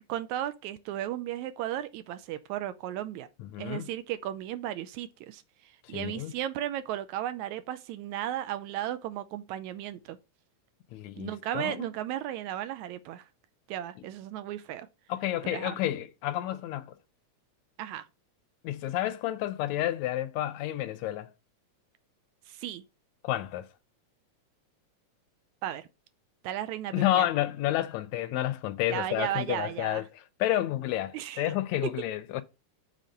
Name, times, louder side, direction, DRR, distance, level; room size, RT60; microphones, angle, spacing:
voice 1, 0.1-3.3 3.6-5.4 5.9-10.2 11.2-13.2 13.7-14.9 15.5-15.8 17.8-18.1 22.5-22.9 25.6-25.9 26.4-27.3 28.9-30.0 31.1-31.5, right 12 dB, 80° right, 1.9 m, -35 dB
voice 2, 3.4-3.9 5.8-6.3 10.9-11.9 15.1-17.0 18.6-21.3 23.2-23.7 26.9-32.4, left 14 dB, 80° left, 1.7 m, -30 dB
7.4 x 4.1 x 6.6 m
omnidirectional pair, 3.4 m